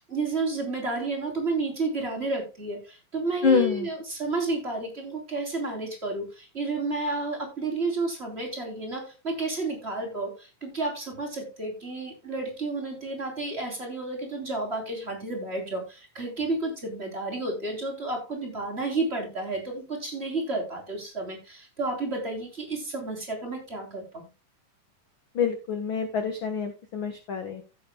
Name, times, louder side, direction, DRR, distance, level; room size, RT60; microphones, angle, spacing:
voice 1, 0.0-24.3, right 3 dB, 15° right, 1 dB, 3.5 m, -31 dB
voice 2, 3.4-3.9 25.3-27.6, left 5 dB, 60° left, 7 dB, 1.3 m, -26 dB
16.0 x 8.5 x 2.2 m, 0.28 s
omnidirectional pair, 4.0 m